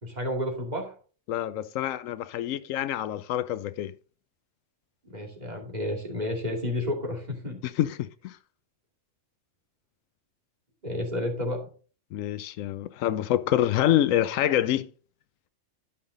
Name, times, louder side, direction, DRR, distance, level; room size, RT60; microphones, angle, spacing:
voice 1, 0.0-0.9 5.0-7.6 10.8-11.7, left 1 dB, 35° right, 2.6 m, -31 dB
voice 2, 1.3-3.9 7.6-8.0 8.2-8.3 12.1-14.9, left 12 dB, 90° left, 1.0 m, -26 dB
12.5 x 5.6 x 3.8 m
omnidirectional pair, 1.3 m